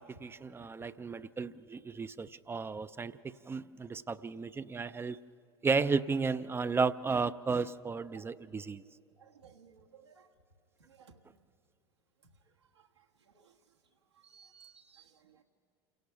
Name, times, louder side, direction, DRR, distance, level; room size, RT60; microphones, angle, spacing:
voice 1, 0.0-5.2 5.6-8.8, right 4 dB, 15° right, 14 dB, 0.4 m, -33 dB
voice 2, 9.2-10.1 11.0-11.1 14.3-15.0, right 7 dB, 85° right, 0 dB, 1.5 m, -57 dB
28.0 x 17.0 x 5.7 m, 2.6 s
figure-of-eight pair, 75°, 14 cm